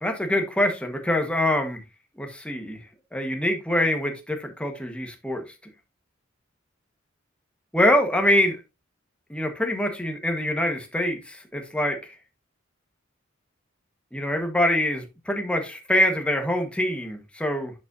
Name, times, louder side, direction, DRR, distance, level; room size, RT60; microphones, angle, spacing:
voice 1, 0.0-1.8 2.2-2.8 3.1-5.4 7.7-8.5 9.3-12.2 14.1-17.7, left 1 dB, 5° left, 4 dB, 1.3 m, -24 dB
10.5 x 5.5 x 2.6 m, 0.25 s
head